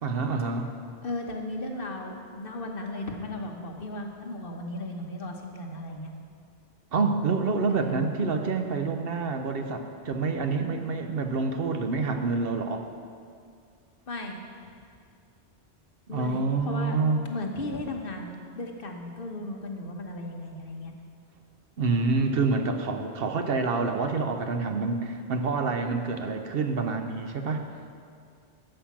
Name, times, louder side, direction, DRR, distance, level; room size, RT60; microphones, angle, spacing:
voice 1, 0.0-0.7 6.9-12.8 16.1-17.2 21.8-27.6, right 4 dB, 60° right, 5 dB, 0.9 m, -27 dB
voice 2, 1.0-6.1 7.7-8.0 10.1-10.2 14.1-14.5 16.1-17.0 17.3-20.9, left 1 dB, 55° left, 2 dB, 1.2 m, -36 dB
11.5 x 5.5 x 7.3 m, 2.3 s
omnidirectional pair, 1.2 m